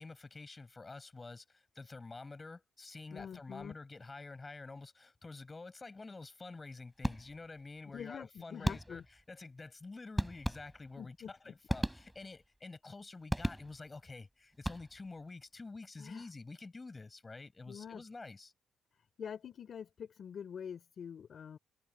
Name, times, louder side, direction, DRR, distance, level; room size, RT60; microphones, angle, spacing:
voice 1, 0.0-18.5, left 3 dB, 25° left, 7.7 m, -49 dB
voice 2, 3.1-3.8 7.8-9.0 11.0-11.5 16.0-16.3 17.7-18.0 19.2-21.6, left 7 dB, 55° left, 3.5 m, -46 dB
sound 1, 7.0-7.6 8.6-9.2 10.2-11.0 11.7-12.5 13.3-14.0 14.5-15.2, right 1 dB, 5° right, 3.8 m, -37 dB
cardioid pair, 90°, 0 cm